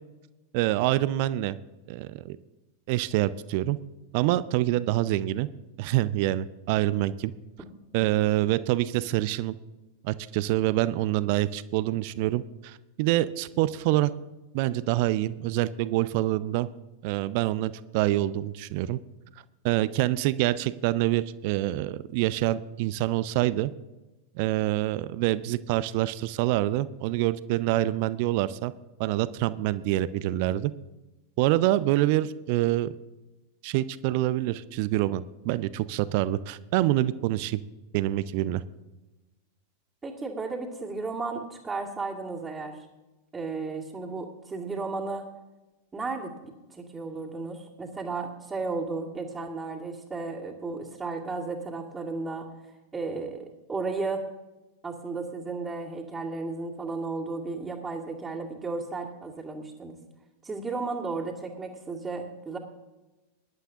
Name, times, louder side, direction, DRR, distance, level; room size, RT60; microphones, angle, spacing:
voice 1, 0.5-1.6 1.9-2.4 2.9-3.8 4.1-5.5 5.8-7.3 7.9-9.5 10.0-14.1 14.5-16.7 17.0-19.0 19.6-23.7 24.4-28.7 29.0-30.7 31.4-32.9 33.6-37.6 37.9-38.6, right 15 dB, 45° right, 16 dB, 0.5 m, -26 dB
voice 2, 40.0-42.8 43.3-45.3 45.9-46.3 46.7-52.5 52.9-54.2 54.8-60.0 60.4-62.6, right 3 dB, 15° right, -6 dB, 2.2 m, -34 dB
22.0 x 11.0 x 2.8 m, 1.1 s
figure-of-eight pair, 90°, 0 cm